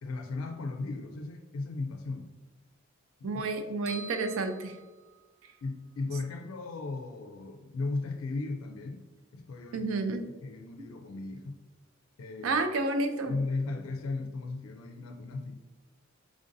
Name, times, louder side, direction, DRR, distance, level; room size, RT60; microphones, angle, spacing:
voice 1, 0.0-2.3 3.2-3.4 5.6-9.1 9.3-9.9 10.4-11.6 12.2-12.6 13.3-15.6, left 3 dB, 90° left, 5 dB, 0.4 m, -36 dB
voice 2, 3.2-4.8 9.7-10.2 12.4-13.3, right 3 dB, 90° right, 7 dB, 0.5 m, -30 dB
sound 1, 3.9-5.6, right 3 dB, 15° left, 0.5 m, -47 dB
3.8 x 3.4 x 2.6 m, 1.2 s
head